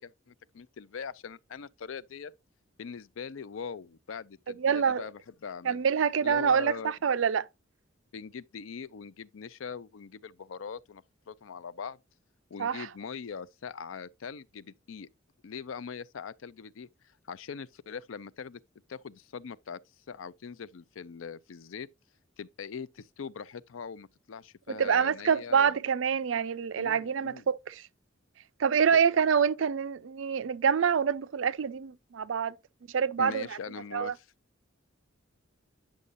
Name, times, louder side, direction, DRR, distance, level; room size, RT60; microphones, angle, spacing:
voice 1, 0.0-2.3 2.8-5.8 6.2-6.9 8.1-12.0 12.5-15.1 15.4-18.6 18.9-19.8 20.1-21.9 22.4-25.8 26.7-27.4 28.9-29.0 33.2-34.3, left 6 dB, 85° left, 0.5 m, -42 dB
voice 2, 4.6-5.0 5.6-7.5 12.6-12.9 24.7-27.8 28.6-32.5 32.9-33.5 33.9-34.1, right 7 dB, 75° right, 0.5 m, -26 dB
9.7 x 6.4 x 2.6 m
head